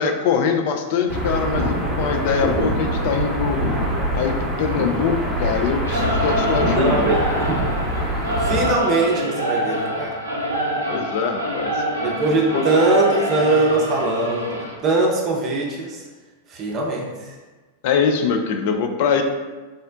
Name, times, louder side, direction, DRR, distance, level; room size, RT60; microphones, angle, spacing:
voice 1, 0.0-3.6 4.1-7.2 10.9-11.8 12.5-12.6 17.8-19.2, left 6 dB, 50° left, 5 dB, 0.3 m, -23 dB
sound 1, 1.1-8.7, equal, 10° right, 0.8 m, -24 dB
Singing / Musical instrument, 5.8-14.7, equal, 80° right, 0.5 m, -25 dB
voice 2, 6.6-7.2 8.4-10.2 12.0-16.0 16.5-17.4, right 2 dB, 35° right, -1 dB, 0.6 m, -21 dB
3.7 x 2.1 x 2.5 m, 1.3 s
figure-of-eight pair, 90°, 0 cm